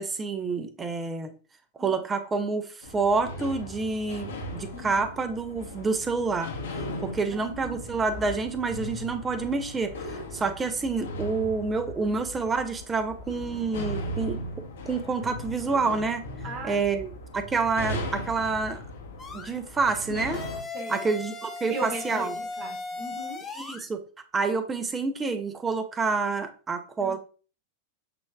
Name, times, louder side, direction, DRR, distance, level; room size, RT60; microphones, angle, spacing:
voice 1, 0.0-1.3 1.8-6.5 7.0-16.2 16.6-18.8 19.3-20.4 20.9-22.4 23.5-24.0 24.3-27.2, right 4 dB, 15° right, 8 dB, 0.6 m, -28 dB
sound 1, 2.8-20.6, left 1 dB, 60° left, 1.0 m, -38 dB
voice 2, 7.3-7.9 12.1-12.2 16.4-16.8 20.7-21.1 21.7-23.4 27.0-27.2, right 2 dB, 35° right, 4 dB, 1.0 m, -38 dB
sound 2, 19.2-19.5 20.3-23.8, left 3 dB, 20° left, 0.7 m, -37 dB
6.8 x 3.1 x 2.4 m, 0.37 s
figure-of-eight pair, 90°, 0 cm